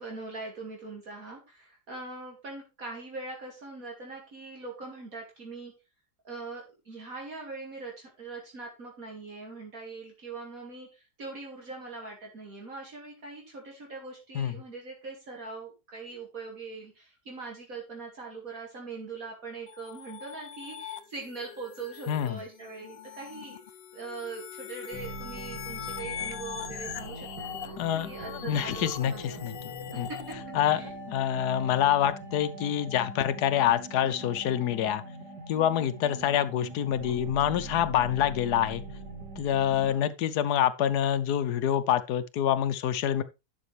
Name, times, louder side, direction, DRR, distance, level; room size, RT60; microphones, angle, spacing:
voice 1, 0.0-5.7 6.2-23.6 23.9-30.4 30.7-31.0 36.8-37.2 39.7-40.0, right 3 dB, 60° right, 2.6 m, -42 dB
sound 1, 19.7-30.3, left 9 dB, 55° left, 0.7 m, -42 dB
voice 2, 22.1-22.4 27.8-28.1 28.4-29.5 30.0-30.1 30.5-30.8 31.1-35.0 35.5-38.8 39.4-43.2, left 10 dB, 80° left, 1.3 m, -26 dB
sound 2, 24.9-39.9, right 1 dB, 90° right, 3.9 m, -42 dB
11.5 x 6.2 x 3.3 m
omnidirectional pair, 1.7 m